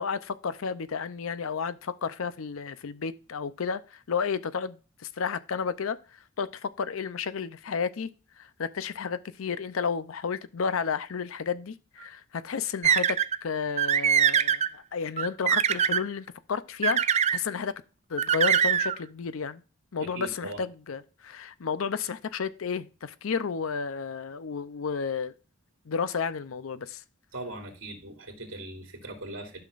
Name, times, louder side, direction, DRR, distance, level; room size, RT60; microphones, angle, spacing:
voice 1, 0.0-8.1 8.4-17.7 18.1-19.6 19.9-25.3 25.9-27.0, left 6 dB, 80° left, 0.5 m, -32 dB
sound 1, 12.8-13.4 13.8-14.7 15.2-16.0 16.8-17.4 18.2-19.0, right 8 dB, 30° right, 0.3 m, -23 dB
voice 2, 20.0-20.6 27.3-29.6, right 2 dB, 70° right, 2.5 m, -40 dB
12.5 x 5.8 x 2.5 m
head